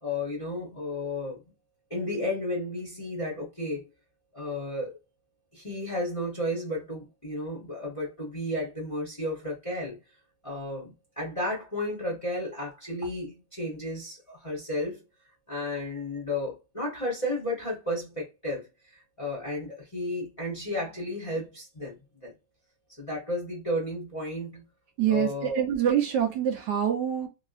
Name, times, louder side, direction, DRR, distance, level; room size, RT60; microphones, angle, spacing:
voice 1, 0.0-1.4 1.9-3.9 4.3-5.0 5.5-10.0 10.4-15.0 15.5-22.3 23.0-24.6 25.1-25.6, left 1 dB, 25° left, 0.8 m, -33 dB
voice 2, 25.0-27.3, right 9 dB, 70° right, 1.2 m, -25 dB
3.1 x 2.7 x 2.5 m
omnidirectional pair, 2.0 m